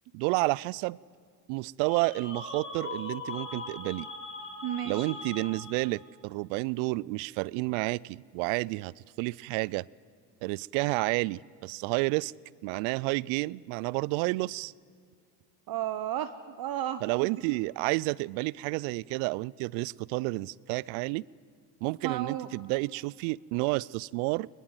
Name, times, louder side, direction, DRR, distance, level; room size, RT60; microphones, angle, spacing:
voice 1, 0.1-1.0 1.5-4.1 4.9-9.8 10.4-12.3 12.6-14.7 17.0-21.2 21.8-24.5, right 23 dB, 70° right, 25 dB, 0.5 m, -30 dB
sound 1, 1.8-6.0, left 3 dB, 25° left, 4.3 m, -40 dB
voice 2, 4.6-5.2 15.7-17.3 22.0-22.5, right 12 dB, 50° right, 11 dB, 0.9 m, -33 dB
21.0 x 20.5 x 7.9 m, 2.1 s
hypercardioid pair, 70°, 48 cm